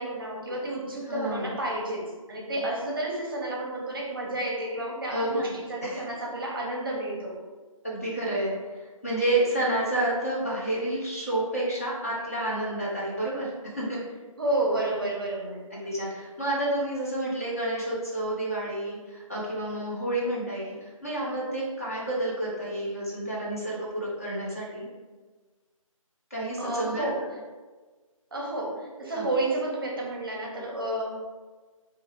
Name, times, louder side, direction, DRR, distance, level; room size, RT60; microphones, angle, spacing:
voice 1, 0.0-7.4 14.4-15.6 26.6-27.2 28.3-31.1, right 1 dB, 40° right, -2 dB, 0.6 m, -30 dB
voice 2, 1.1-1.6 5.1-5.4 5.8-6.0 7.8-14.0 15.7-24.9 26.3-27.3 29.1-29.3, right 1 dB, 25° left, -6 dB, 0.5 m, -30 dB
2.6 x 2.3 x 3.0 m, 1.3 s
figure-of-eight pair, 160°, 18 cm